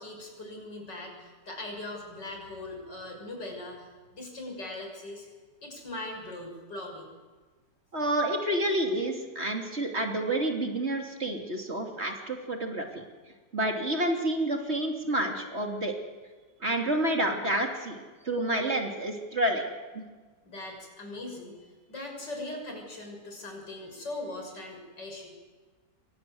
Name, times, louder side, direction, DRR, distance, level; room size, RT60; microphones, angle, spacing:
voice 1, 0.0-5.3 5.6-7.1 18.2-18.3 20.4-25.3, left 2 dB, 90° left, 2 dB, 7.4 m, -40 dB
voice 2, 7.9-13.0 13.5-15.9 16.6-19.6 19.9-20.0, right 1 dB, 35° right, 3 dB, 3.2 m, -29 dB
28.5 x 24.0 x 7.8 m, 1.4 s
omnidirectional pair, 1.8 m